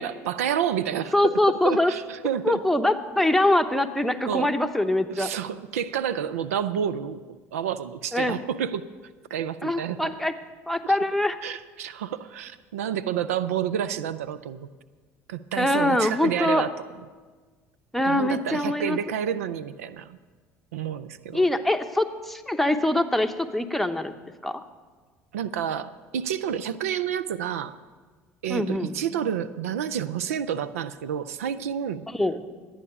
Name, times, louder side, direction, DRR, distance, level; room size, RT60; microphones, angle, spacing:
voice 1, 0.0-1.1 1.5-2.6 4.3-4.5 5.2-8.8 9.3-10.1 10.8-10.9 11.4-14.7 15.3-16.7 18.0-20.2 20.7-21.5 25.3-27.7 28.4-32.1, right 9 dB, 85° right, 15 dB, 0.4 m, -29 dB
voice 2, 1.1-1.9 2.4-5.3 8.1-8.4 9.6-10.3 10.7-11.4 15.6-16.6 17.9-19.0 21.3-24.1 24.4-24.6 28.5-28.9 32.1-32.4, left 1 dB, ahead, 7 dB, 0.9 m, -23 dB
12.0 x 8.7 x 6.9 m, 1.4 s
hypercardioid pair, 65°, 8 cm